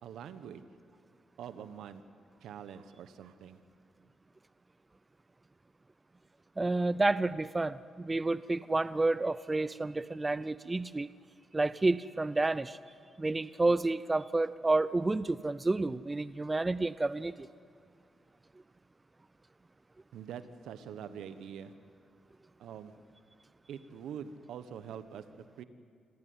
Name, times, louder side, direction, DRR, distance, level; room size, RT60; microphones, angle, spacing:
voice 1, 0.0-0.6 1.4-2.0 2.4-3.6 20.1-21.7 22.6-22.9 23.7-25.6, right 8 dB, 80° right, 12 dB, 1.3 m, -44 dB
voice 2, 6.6-11.1 11.5-12.8 13.2-17.5, right 2 dB, 20° right, 17 dB, 0.5 m, -30 dB
26.5 x 16.0 x 9.7 m, 2.2 s
cardioid pair, 75°, 0 cm